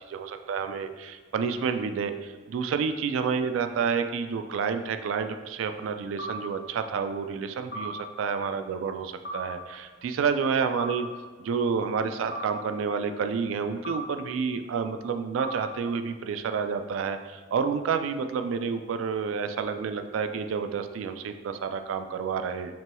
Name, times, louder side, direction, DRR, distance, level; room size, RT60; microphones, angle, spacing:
voice 1, 0.0-11.1 11.4-22.7, right 6 dB, 90° right, 8 dB, 0.3 m, -29 dB
sound 1, 6.2-6.4 7.7-7.9 9.2-9.4 10.8-11.0 12.3-12.5 13.8-14.0 15.4-15.6, right 1 dB, 45° left, 0.6 m, -35 dB
5.9 x 2.2 x 2.9 m, 1.4 s
head